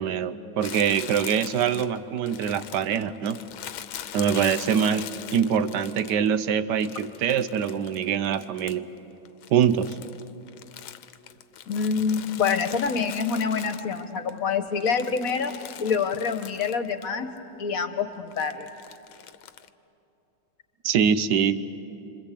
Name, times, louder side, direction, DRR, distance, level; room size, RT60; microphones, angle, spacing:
voice 1, 0.0-3.4 4.1-8.9 9.5-10.0 20.8-21.6, right 8 dB, 65° right, 13 dB, 1.3 m, -24 dB
Crumpling crinkling, 0.6-6.4 6.8-9.0 9.3-14.3 14.7-17.1 17.4-17.5 18.3-19.7, left 10 dB, 90° left, 1.6 m, -41 dB
voice 2, 11.7-15.5 15.8-17.3 17.6-18.7, left 5 dB, 50° left, 9 dB, 1.4 m, -26 dB
27.5 x 25.5 x 8.4 m, 2.9 s
omnidirectional pair, 2.2 m